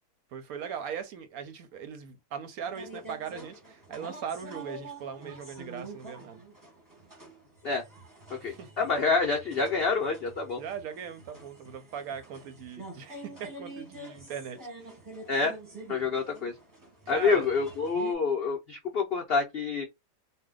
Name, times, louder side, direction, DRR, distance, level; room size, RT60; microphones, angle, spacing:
voice 1, 0.3-6.4 8.4-8.7 10.6-14.9 17.1-17.5, right 7 dB, 70° right, 1.0 m, -39 dB
sound 1, 2.7-18.1, right 2 dB, 15° right, 0.8 m, -47 dB
voice 2, 8.3-10.6 15.3-15.6 15.9-16.5 17.1-19.8, left 4 dB, 80° left, 0.5 m, -27 dB
2.7 x 2.1 x 3.6 m
omnidirectional pair, 1.7 m